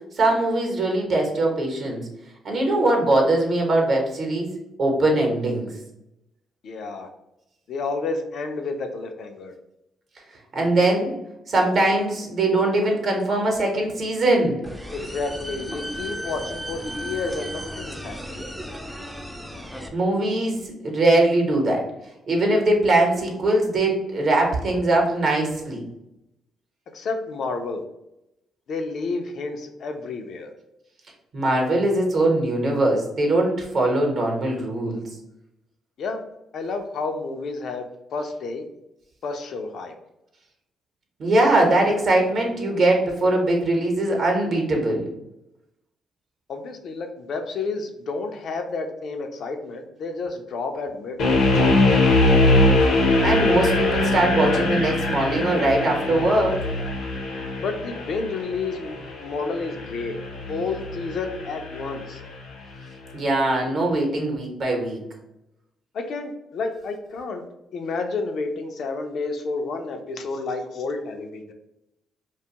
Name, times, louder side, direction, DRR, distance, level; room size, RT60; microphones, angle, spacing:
voice 1, 0.2-2.0 2.4-4.5 4.8-5.7 10.5-11.1 11.5-14.6 19.9-21.9 22.3-25.8 31.3-35.0 41.2-45.1 53.2-56.6 63.1-65.0, right 2 dB, 55° right, 1 dB, 0.8 m, -21 dB
voice 2, 6.6-7.1 7.7-9.5 14.9-18.4 26.9-27.8 28.7-30.5 36.0-36.2 36.5-37.9 38.1-38.7 39.2-39.9 46.5-52.1 57.6-60.2 60.5-62.2 65.9-67.5 67.7-71.5, left 3 dB, 65° left, 5 dB, 0.4 m, -30 dB
sound 1, 14.6-19.9, equal, 5° right, 0.3 m, -35 dB
sound 2, 51.2-62.2, left 2 dB, 85° left, 0.7 m, -22 dB
2.5 x 2.3 x 2.8 m, 0.87 s
cardioid pair, 90°, 0 cm